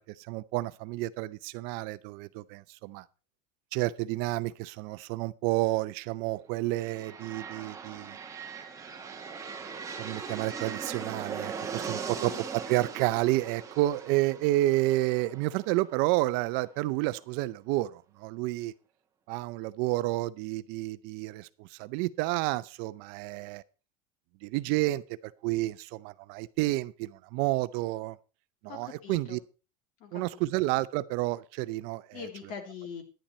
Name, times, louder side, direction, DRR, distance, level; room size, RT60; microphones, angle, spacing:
voice 1, 0.0-3.0 3.7-8.2 10.0-18.7 19.3-23.6 24.4-28.2 28.6-29.4 30.1-32.0, right 18 dB, 55° right, 0.6 m, -30 dB
sound 1, 6.7-16.5, right 6 dB, 15° right, 1.5 m, -40 dB
voice 2, 11.8-12.5 28.7-29.4 30.0-30.4 32.1-33.0, left 6 dB, 50° left, 2.8 m, -43 dB
10.5 x 10.0 x 4.3 m
supercardioid pair, 155°, 19 cm